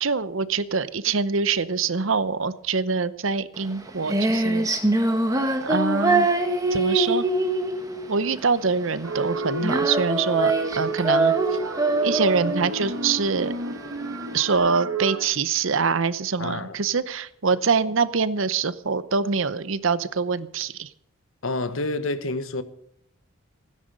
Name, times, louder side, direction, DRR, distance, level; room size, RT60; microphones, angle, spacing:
voice 1, 0.0-4.7 5.6-6.3 6.7-7.3 8.1-11.3 12.0-13.5 14.3-20.9, right 5 dB, 65° right, 0.8 m, -24 dB
Female singing, 3.6-14.5, right 2 dB, 15° right, 1.6 m, -24 dB
sound 1, 9.0-15.2, right 3 dB, 90° right, 1.3 m, -30 dB
voice 2, 16.4-16.8 21.4-22.6, left 2 dB, 70° left, 1.1 m, -28 dB
16.5 x 10.0 x 6.6 m
head